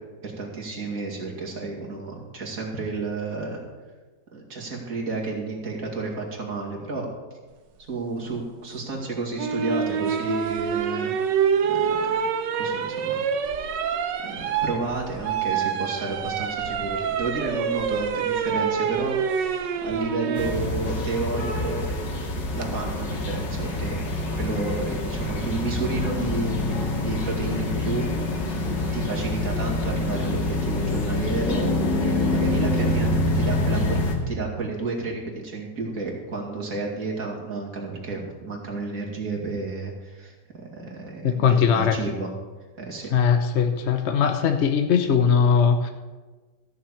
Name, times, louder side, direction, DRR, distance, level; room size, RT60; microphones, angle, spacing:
voice 1, 0.2-3.6 4.3-7.1 7.9-11.1 11.6-12.1 12.5-13.2 14.2-21.8 22.2-24.0 24.3-28.1 28.9-31.7 32.0-34.0 34.3-42.3 42.8-43.1, right 3 dB, 50° right, -2 dB, 2.8 m, -31 dB
sound 1, 9.4-20.6 22.2-22.7, right 7 dB, 85° right, 1.5 m, -26 dB
sound 2, 20.4-34.2, left 2 dB, 90° left, 2.5 m, -26 dB
voice 2, 41.2-42.0 43.1-45.9, left 6 dB, 50° left, 6 dB, 0.9 m, -20 dB
14.0 x 6.7 x 7.2 m, 1.3 s
omnidirectional pair, 1.9 m